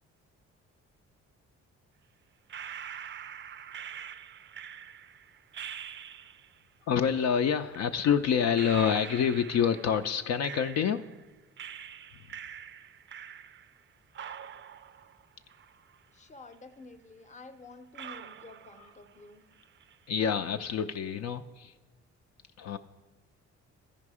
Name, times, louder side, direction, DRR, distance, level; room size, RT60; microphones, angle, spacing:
sound 1, 2.5-6.6 7.7-7.8 8.5-11.2 11.6-13.8 14.1-16.2 16.5-16.6 17.3-17.4 17.9-19.3 19.5-20.1, right 8 dB, 40° right, 0.4 m, -45 dB
voice 1, 6.9-11.1 18.8-18.9 20.1-21.7 22.6-22.8, left 7 dB, 60° left, 7 dB, 0.5 m, -27 dB
voice 2, 16.1-19.4, left 3 dB, 25° left, 11 dB, 0.6 m, -50 dB
13.5 x 5.2 x 4.8 m, 1.2 s
cardioid pair, 90°, 30 cm